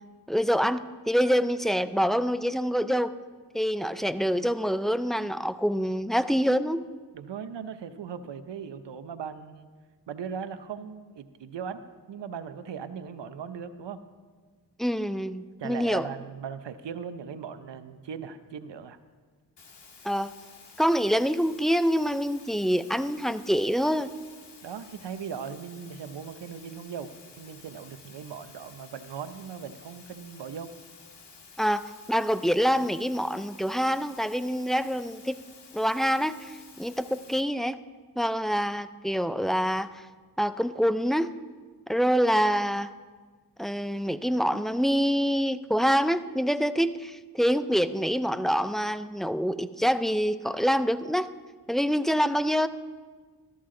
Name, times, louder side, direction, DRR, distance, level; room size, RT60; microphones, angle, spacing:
voice 1, 0.3-3.1 3.5-6.8 14.8-16.1 20.0-20.3 20.8-24.1 31.6-35.4 35.7-37.8 38.2-40.0 40.4-41.3 41.9-42.9 43.6-51.3 51.7-52.7, equal, ahead, 11 dB, 0.4 m, -26 dB
voice 2, 7.1-9.7 10.1-11.8 12.1-14.0 15.6-19.0 24.6-30.7, right 7 dB, 85° right, 10 dB, 0.8 m, -38 dB
sound 1, 19.6-37.4, left 4 dB, 75° left, 1.8 m, -52 dB
14.0 x 13.5 x 3.8 m, 1.5 s
cardioid pair, 65°, 42 cm